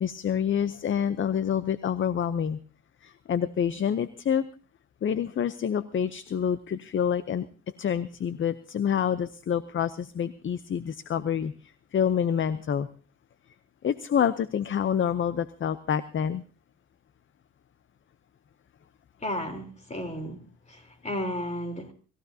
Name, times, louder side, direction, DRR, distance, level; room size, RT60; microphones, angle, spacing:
voice 1, 0.0-2.6 3.0-4.4 5.0-7.5 7.8-12.9 13.8-16.4, left 8 dB, 40° left, 15 dB, 0.7 m, -27 dB
voice 2, 19.2-21.9, left 1 dB, 20° left, 6 dB, 3.6 m, -34 dB
26.5 x 15.0 x 2.8 m, 0.37 s
cardioid pair, 90°, 30 cm